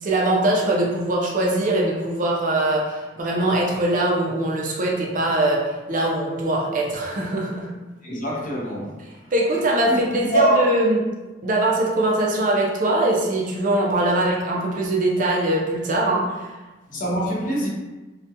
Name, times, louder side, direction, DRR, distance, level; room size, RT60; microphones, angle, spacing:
voice 1, 0.0-7.7 9.3-11.0 11.4-16.5, right 1 dB, 45° right, -2 dB, 0.4 m, -22 dB
voice 2, 8.0-9.0 9.8-10.7 14.1-14.3 16.9-17.7, right 1 dB, 45° left, -4 dB, 0.6 m, -24 dB
2.3 x 2.2 x 2.7 m, 1.2 s
head